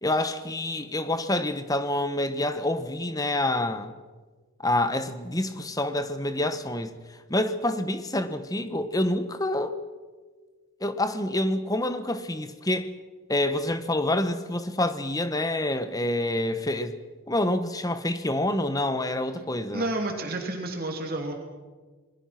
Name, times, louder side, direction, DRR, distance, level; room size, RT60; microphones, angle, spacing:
voice 1, 0.0-3.9 4.6-7.0 7.3-9.8 10.8-12.9 13.3-17.0 17.3-19.9, left 1 dB, 15° left, 1.2 m, -27 dB
voice 2, 19.7-21.3, right 2 dB, 40° right, 2.7 m, -30 dB
27.5 x 21.0 x 5.9 m
head